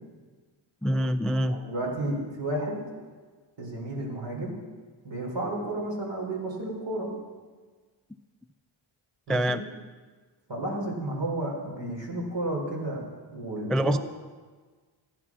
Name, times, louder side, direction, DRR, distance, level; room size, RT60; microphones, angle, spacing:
voice 1, 0.8-1.6 9.3-9.6 13.7-14.0, equal, ahead, 13 dB, 0.3 m, -25 dB
voice 2, 1.5-2.8 3.6-4.5 5.0-7.1 9.3-9.6 10.5-13.0 13.3-14.0, right 1 dB, 60° right, -1 dB, 4.2 m, -32 dB
15.0 x 10.0 x 6.2 m, 1.4 s
cardioid pair, 80°, 48 cm